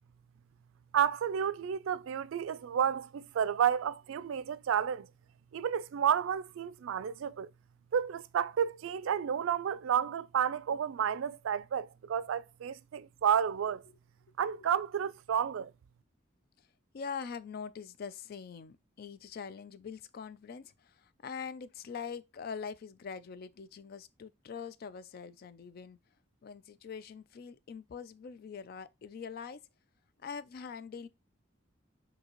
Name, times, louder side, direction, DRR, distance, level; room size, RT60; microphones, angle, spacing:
voice 1, 0.9-5.1 5.5-7.5 7.9-13.8 14.4-15.7, right 8 dB, 85° right, 0.3 m, -31 dB
voice 2, 16.9-26.0 26.4-29.6 30.2-31.1, left 6 dB, 50° left, 0.3 m, -43 dB
6.4 x 2.7 x 2.9 m
head